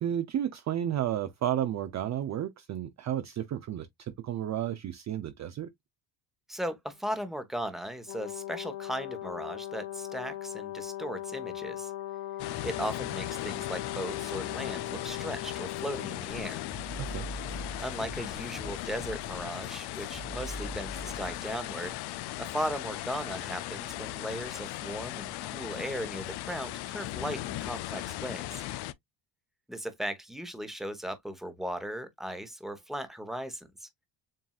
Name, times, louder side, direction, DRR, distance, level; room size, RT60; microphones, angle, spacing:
voice 1, 0.0-5.7 17.0-17.3, right 11 dB, 40° right, 0.5 m, -32 dB
voice 2, 6.5-11.9 12.6-16.6 17.8-22.0 22.4-28.6 29.7-33.9, equal, ahead, 0.9 m, -37 dB
Brass instrument, 8.1-16.8, left 12 dB, 80° left, 1.6 m, -39 dB
sound 1, 12.4-28.9, left 15 dB, 60° left, 0.5 m, -38 dB
sound 2, 16.3-21.5, right 1 dB, 15° left, 1.5 m, -43 dB
7.4 x 2.6 x 2.3 m
cardioid pair, 130°, 47 cm